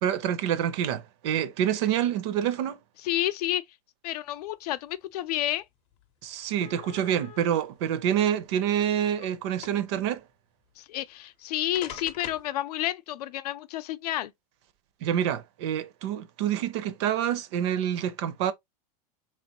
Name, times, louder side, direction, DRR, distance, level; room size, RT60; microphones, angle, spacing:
voice 1, 0.0-2.8 6.2-10.2 15.0-18.5, right 10 dB, 45° right, 0.5 m, -27 dB
voice 2, 3.0-3.6 4.0-5.6 10.8-14.3, left 13 dB, 80° left, 0.5 m, -30 dB
sound 1, 5.5-5.6 5.9-6.1 6.6-7.6 8.4-9.3 9.6-10.0 11.1-11.2 11.7-12.5, left 9 dB, 30° left, 0.6 m, -44 dB
3.8 x 3.0 x 2.8 m
supercardioid pair, 175°, 20 cm